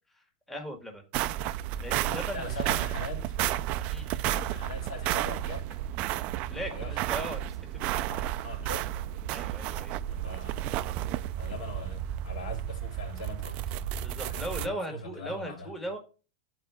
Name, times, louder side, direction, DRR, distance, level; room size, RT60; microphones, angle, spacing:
voice 1, 0.1-1.0 1.8-2.9 3.9-4.3 6.5-8.3 9.3-10.0 14.0-16.0, right 1 dB, 5° left, 1.7 m, -39 dB
sound 1, 1.1-14.7, right 12 dB, 40° right, 0.4 m, -32 dB
voice 2, 2.3-3.4 4.2-5.8 6.4-7.3 8.1-8.8 9.6-9.7 10.1-10.7 11.4-13.9 14.1-15.7, left 2 dB, 90° left, 3.4 m, -41 dB
12.0 x 4.6 x 3.5 m
supercardioid pair, 155°, 3 cm